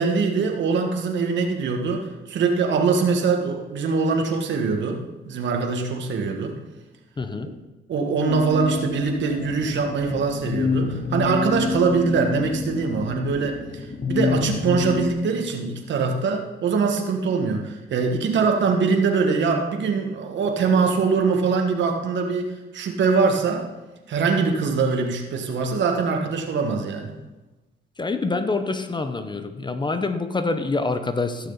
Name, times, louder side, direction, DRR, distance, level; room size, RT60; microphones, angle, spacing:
voice 1, 0.0-6.5 7.9-23.7 24.1-27.1, right 4 dB, 65° right, 3 dB, 1.7 m, -23 dB
voice 2, 7.2-7.5 14.7-14.8 28.0-31.5, left 3 dB, 25° left, 10 dB, 0.8 m, -26 dB
sound 1, 8.3-15.1, left 5 dB, 40° left, 1.1 m, -28 dB
15.5 x 6.5 x 4.0 m, 1.1 s
cardioid pair, 90°, 20 cm